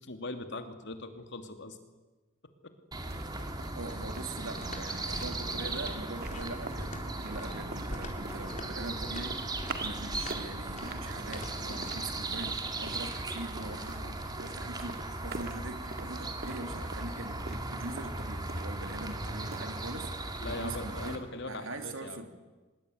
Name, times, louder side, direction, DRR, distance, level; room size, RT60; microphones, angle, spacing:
voice 1, 0.0-1.8 2.6-2.7 4.9-5.1 20.4-22.3, left 2 dB, 60° left, 7 dB, 2.9 m, -41 dB
sound 1, 2.9-21.2, right 2 dB, 20° right, 2.6 m, -37 dB
sound 2, 2.9-21.5, right 3 dB, 55° right, 2.1 m, -48 dB
sound 3, 3.4-12.0, left 1 dB, 40° left, 4.1 m, -45 dB
voice 2, 3.7-20.1 20.5-22.3, right 2 dB, 80° right, 7 dB, 2.9 m, -42 dB
24.5 x 21.5 x 9.6 m, 1.2 s
head